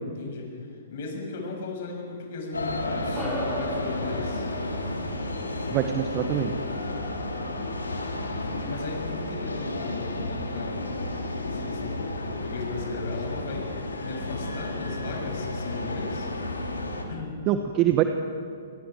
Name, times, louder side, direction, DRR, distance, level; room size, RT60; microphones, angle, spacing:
voice 1, 0.0-4.5 8.3-10.9 11.5-13.7 14.0-16.3 17.1-17.4, left 3 dB, 55° left, 1 dB, 7.1 m, -36 dB
sound 1, 2.5-17.1, left 2 dB, 85° left, 3.0 m, -32 dB
sound 2, 3.1-7.9, right 1 dB, 5° right, 7.3 m, -38 dB
voice 2, 5.7-6.6 17.5-18.0, right 12 dB, 35° right, 7 dB, 1.3 m, -24 dB
28.5 x 23.0 x 4.8 m, 2.4 s
figure-of-eight pair, 120°, 0 cm